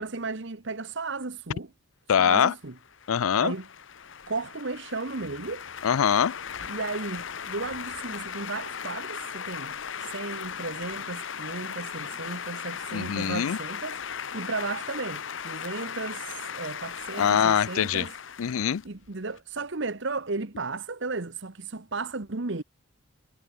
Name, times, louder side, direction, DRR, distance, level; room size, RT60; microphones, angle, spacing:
voice 1, 0.0-1.7 2.2-2.8 3.4-3.7 4.3-5.6 6.7-14.0 14.3-18.2 18.8-22.6, right 3 dB, 55° right, 1.1 m, -34 dB
voice 2, 2.1-2.5 3.1-3.5 5.8-6.3 12.9-13.6 17.2-18.0 18.4-18.8, left 8 dB, 80° left, 0.4 m, -23 dB
sound 1, 2.7-19.4, left 7 dB, 60° left, 0.9 m, -38 dB
head